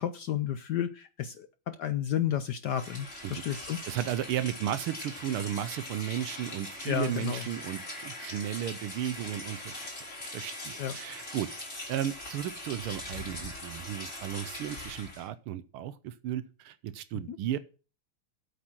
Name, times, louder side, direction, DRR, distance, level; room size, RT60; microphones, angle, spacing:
voice 1, 0.0-3.8 6.8-7.4 10.8-10.9 17.3-17.4, left 10 dB, 70° left, 11 dB, 1.0 m, -32 dB
Rain, 2.7-15.3, left 1 dB, 30° left, 4.1 m, -41 dB
voice 2, 3.2-9.7 10.3-11.5 11.9-17.6, right 11 dB, 80° right, 14 dB, 1.6 m, -34 dB
8.4 x 8.3 x 6.1 m, 0.35 s
omnidirectional pair, 2.4 m